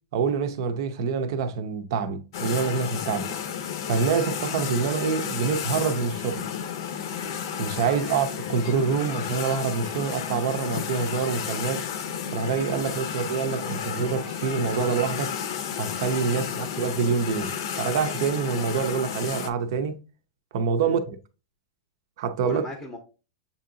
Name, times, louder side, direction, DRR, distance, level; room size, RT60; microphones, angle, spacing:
voice 1, 0.1-3.3 3.9-6.5 7.6-11.9 12.3-15.3 15.7-20.0 20.5-21.2 22.2-22.6, right 6 dB, 55° right, 0.6 m, -26 dB
sound 1, 2.3-19.5, left 8 dB, 60° left, 0.6 m, -32 dB
voice 2, 7.9-8.2 12.8-13.0 16.3-16.6 20.8-21.0 22.4-23.0, left 2 dB, 5° left, 0.7 m, -40 dB
6.9 x 2.8 x 2.6 m
supercardioid pair, 160°, 3 cm